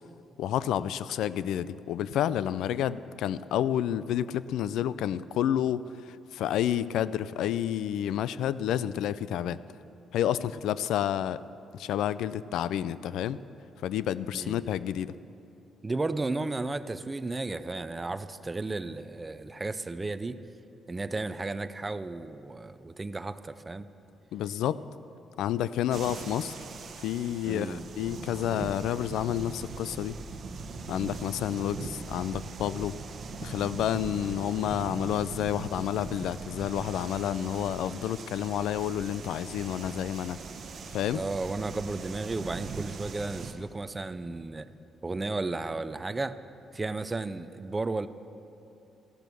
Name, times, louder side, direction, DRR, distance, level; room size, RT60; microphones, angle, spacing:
voice 1, 0.4-9.6 10.1-11.4 11.7-13.4 13.8-15.1 24.3-24.8 25.4-26.6 27.0-30.2 30.9-33.0 33.4-40.4 40.9-41.2, left 10 dB, 85° left, 16 dB, 0.4 m, -30 dB
voice 2, 14.3-14.7 15.8-20.4 20.9-23.9 27.4-27.9 41.1-44.7 45.0-46.4 46.7-48.1, right 3 dB, 20° right, 12 dB, 0.5 m, -34 dB
sound 1, 25.9-43.5, right 4 dB, 45° right, 0.9 m, -41 dB
14.0 x 12.0 x 6.2 m, 2.7 s
cardioid pair, 125°, 0 cm